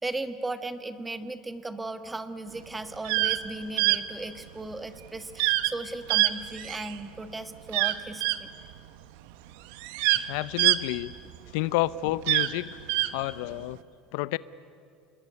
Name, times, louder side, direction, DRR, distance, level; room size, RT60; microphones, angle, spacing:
voice 1, 0.0-8.5, right 2 dB, 10° right, 10 dB, 1.4 m, -36 dB
sound 1, 2.9-3.4 3.8-4.0 5.4-5.7 6.1-7.0 7.7-8.4 9.3-9.4 9.7-11.5 12.1-13.1, right 17 dB, 80° right, 1.1 m, -24 dB
voice 2, 10.3-11.1 11.5-12.8 13.0-13.8 14.1-14.4, left 17 dB, 75° left, 18 dB, 0.6 m, -29 dB
27.5 x 21.0 x 9.6 m, 2.5 s
supercardioid pair, 135°, 0 cm